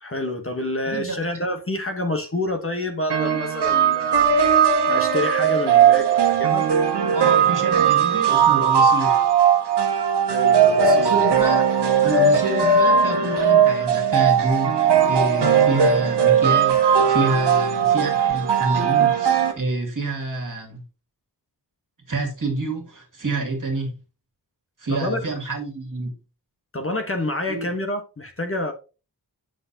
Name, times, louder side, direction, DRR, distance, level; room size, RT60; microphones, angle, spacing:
voice 1, 0.0-4.5 4.9-6.7 10.3-11.2 24.9-25.2 26.7-28.7, left 2 dB, 35° left, 1.1 m, -28 dB
sound 1, 3.1-19.5, right 7 dB, 80° right, 1.2 m, -18 dB
voice 2, 7.1-9.2 10.8-11.7 12.0-20.8 22.1-24.0 24.8-26.1 27.5-27.7, right 3 dB, 50° right, 2.4 m, -27 dB
7.8 x 6.1 x 2.8 m
wide cardioid pair, 100°, 40 cm